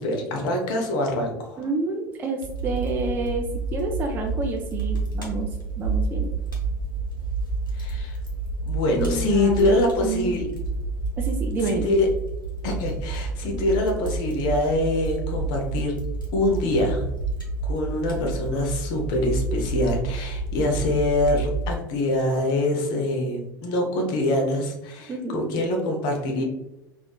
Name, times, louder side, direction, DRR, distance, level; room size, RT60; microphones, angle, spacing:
voice 1, 0.0-1.6 7.7-8.2 8.6-10.5 11.6-12.1 12.6-16.0 16.3-17.0 17.6-26.4, left 1 dB, 45° left, 2 dB, 0.7 m, -24 dB
voice 2, 1.6-3.4 3.7-5.5 5.8-6.3 9.0-10.4 11.2-11.9 13.4-13.7 25.1-25.5, right 3 dB, 20° right, 2 dB, 0.3 m, -29 dB
Fire, 2.4-21.7, right 3 dB, 85° left, 0.7 m, -29 dB
3.4 x 2.4 x 2.2 m, 0.92 s
figure-of-eight pair, 80°, 11 cm